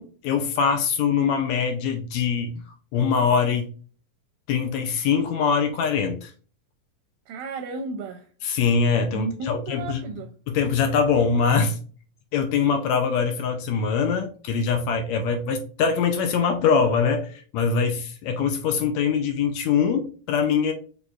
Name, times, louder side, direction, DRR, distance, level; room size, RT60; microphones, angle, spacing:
voice 1, 0.0-2.6 2.9-3.7 4.5-6.3 8.4-10.0 10.5-11.8 12.3-20.7, left 6 dB, 80° left, 1.6 m, -23 dB
voice 2, 7.3-8.3 9.1-10.3, right 3 dB, 80° right, 1.7 m, -33 dB
6.1 x 3.4 x 2.3 m
omnidirectional pair, 3.7 m